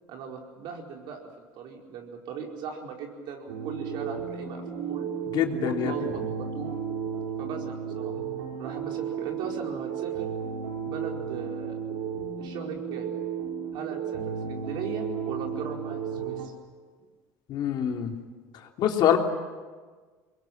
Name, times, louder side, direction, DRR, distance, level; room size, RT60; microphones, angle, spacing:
voice 1, 0.1-5.1 5.5-6.8 7.4-8.1 8.6-10.3 10.8-11.8 12.4-13.1 13.7-16.5, right 6 dB, 65° right, 2 dB, 4.8 m, -38 dB
sound 1, 3.5-16.5, right 7 dB, 90° right, 4.4 m, -34 dB
voice 2, 5.3-6.1 17.5-18.1 18.8-19.2, left 10 dB, 60° left, 3 dB, 3.2 m, -25 dB
24.0 x 21.5 x 8.9 m, 1.4 s
supercardioid pair, 85°, 8 cm